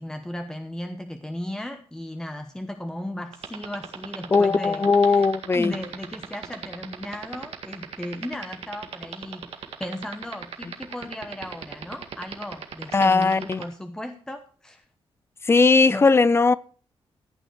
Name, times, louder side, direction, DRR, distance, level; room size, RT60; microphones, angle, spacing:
voice 1, 0.0-5.3 5.5-14.8 15.9-16.0, left 1 dB, 5° left, 0.9 m, -36 dB
sound 1, 3.3-13.6, right 8 dB, 85° right, 1.9 m, -35 dB
voice 2, 4.3-5.7 12.9-13.6 15.4-16.5, left 4 dB, 25° left, 0.5 m, -18 dB
15.0 x 9.2 x 4.7 m
wide cardioid pair, 150°, 10 cm